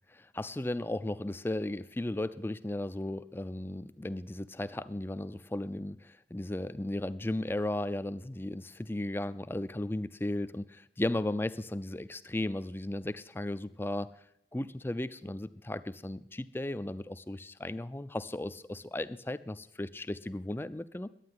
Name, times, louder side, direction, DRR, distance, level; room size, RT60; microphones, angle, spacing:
voice 1, 0.1-14.1 14.5-21.1, left 1 dB, 10° left, 14 dB, 0.4 m, -35 dB
11.5 x 9.5 x 9.4 m, 0.75 s
head